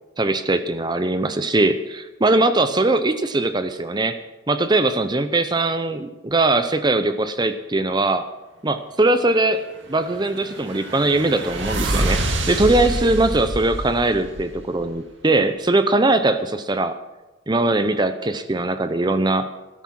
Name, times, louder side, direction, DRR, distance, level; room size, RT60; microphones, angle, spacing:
voice 1, 0.2-4.2 4.5-8.2 8.6-9.6 9.9-12.2 12.5-17.0 17.5-19.5, right 2 dB, 25° right, 10 dB, 0.7 m, -20 dB
sound 1, 10.0-14.9, right 1 dB, 80° right, 2.0 m, -26 dB
13.0 x 12.0 x 5.9 m, 1.1 s
head